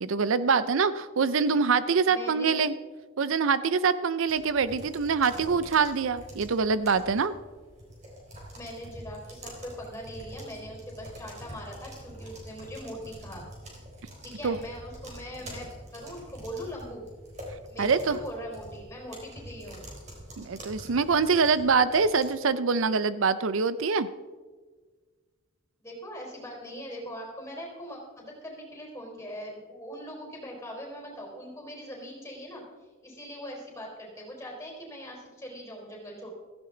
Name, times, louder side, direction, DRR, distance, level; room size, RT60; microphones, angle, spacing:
voice 1, 0.0-2.7 3.2-7.3 14.4-14.6 17.8-18.2 20.4-24.1, right 5 dB, 70° right, 14 dB, 0.5 m, -24 dB
voice 2, 2.0-2.6 8.5-13.4 14.2-17.0 17.7-19.8 20.1-20.2 25.8-32.6 33.0-36.3, equal, 15° left, -1 dB, 4.1 m, -41 dB
sound 1, 4.2-22.3, equal, 30° right, 3.8 m, -46 dB
16.5 x 14.5 x 3.9 m, 1.4 s
head